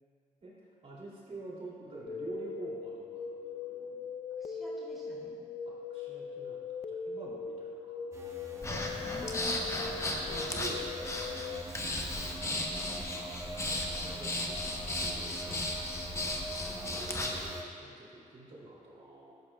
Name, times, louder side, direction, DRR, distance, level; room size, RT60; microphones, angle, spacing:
voice 1, 0.8-4.1 5.6-8.7 9.9-11.7 13.1-15.7 16.9-19.3, right 2 dB, 45° right, -5 dB, 2.4 m, -48 dB
sound 1, 2.1-11.6, left 5 dB, 45° left, 0.5 m, -40 dB
voice 2, 4.4-5.4 9.2-9.5 12.4-12.9 16.6-16.9, left 1 dB, ahead, -6 dB, 2.3 m, -49 dB
sound 2, 8.1-17.6, right 1 dB, 20° right, 1.2 m, -44 dB
Breathing, 8.6-17.5, left 1 dB, 20° left, 1.0 m, -36 dB
12.0 x 10.5 x 2.2 m, 2.4 s
cardioid pair, 110°, 14 cm